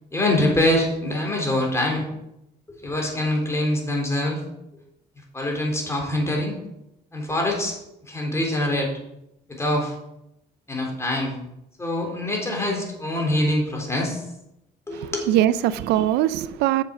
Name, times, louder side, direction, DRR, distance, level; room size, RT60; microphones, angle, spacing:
voice 1, 0.1-2.1 2.7-4.4 5.3-6.6 7.1-7.8 8.1-8.9 9.5-9.9 10.7-11.4 11.8-14.2 14.9-15.3, left 1 dB, 15° left, 3.5 m, -24 dB
voice 2, 14.9-16.8, right 12 dB, 85° right, 0.5 m, -22 dB
7.4 x 7.3 x 6.2 m
cardioid pair, 110°, 17 cm